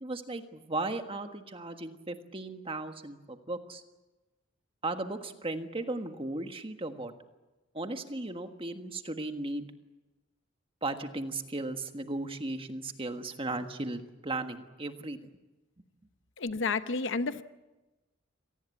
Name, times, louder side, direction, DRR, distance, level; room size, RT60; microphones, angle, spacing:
voice 1, 0.0-3.8 4.8-7.1 7.7-9.6 10.8-15.2, right 2 dB, 25° right, 6 dB, 1.5 m, -36 dB
voice 2, 16.4-17.4, left 4 dB, 60° left, 11 dB, 0.9 m, -30 dB
26.0 x 19.0 x 8.5 m, 1.1 s
head